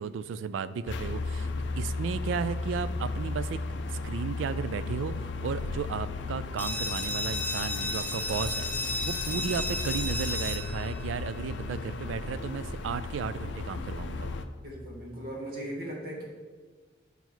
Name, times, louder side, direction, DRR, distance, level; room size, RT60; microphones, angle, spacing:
voice 1, 0.0-1.5 1.8-3.6 3.9-5.2 5.4-14.3, right 6 dB, 75° right, 15 dB, 0.3 m, -34 dB
sound 1, 0.9-14.4, left 3 dB, 65° left, 0.5 m, -35 dB
sound 2, 6.6-12.0, left 2 dB, 10° left, 0.5 m, -34 dB
voice 2, 14.6-16.2, right 1 dB, 50° right, -3 dB, 1.6 m, -38 dB
5.3 x 4.6 x 6.0 m, 1.4 s
head